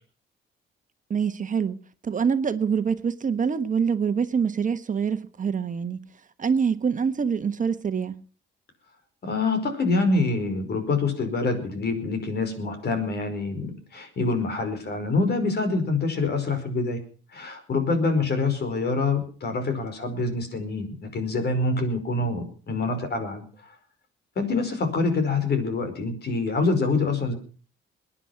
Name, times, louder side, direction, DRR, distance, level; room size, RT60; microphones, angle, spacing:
voice 1, 1.1-1.8 2.0-6.0 6.4-8.2, right 6 dB, 40° right, 1.3 m, -25 dB
voice 2, 9.2-17.0 17.3-23.7 24.3-27.3, left 3 dB, 55° left, 5.1 m, -26 dB
22.0 x 10.0 x 6.0 m
cardioid pair, 90°, 20 cm